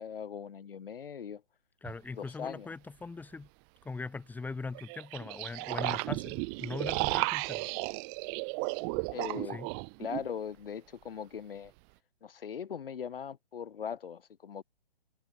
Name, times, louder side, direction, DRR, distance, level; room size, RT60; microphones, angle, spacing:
voice 1, 0.0-1.4 2.2-2.7 9.1-9.6 10.0-11.7 12.2-14.6, left 7 dB, 65° left, 2.6 m, -40 dB
voice 2, 1.8-3.5 3.8-7.7 9.5-9.7, left 4 dB, 5° left, 4.6 m, -40 dB
sound 1, 1.8-1.9 4.7-10.3, right 40 dB or more, 25° right, 1.9 m, -34 dB
hypercardioid pair, 145°, 30 cm